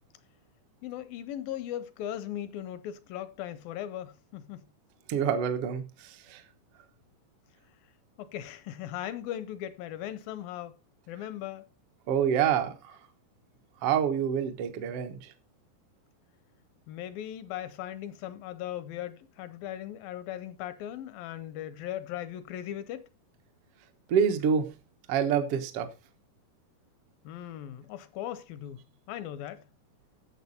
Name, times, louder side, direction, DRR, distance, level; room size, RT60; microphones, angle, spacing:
voice 1, 0.8-4.6 8.2-10.8 11.1-11.7 16.9-23.1 27.2-29.6, left 11 dB, 80° left, 2.1 m, -38 dB
voice 2, 5.1-6.4 12.1-12.9 13.8-15.3 24.1-24.6 25.1-25.9, right 8 dB, 80° right, 1.3 m, -27 dB
12.0 x 7.3 x 4.1 m
omnidirectional pair, 4.7 m